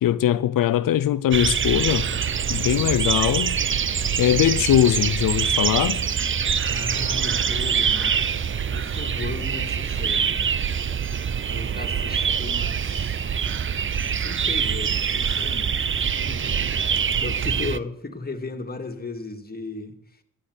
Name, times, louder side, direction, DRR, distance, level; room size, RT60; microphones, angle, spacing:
voice 1, 0.0-2.1 2.5-3.5 4.2-6.0, left 11 dB, 90° left, 0.6 m, -21 dB
sound 1, 1.3-17.8, right 7 dB, 40° right, 0.6 m, -24 dB
voice 2, 6.7-10.3 11.5-13.2 14.1-16.6 17.2-20.2, left 3 dB, 30° left, 2.1 m, -36 dB
14.5 x 10.0 x 8.0 m
cardioid pair, 80°, 32 cm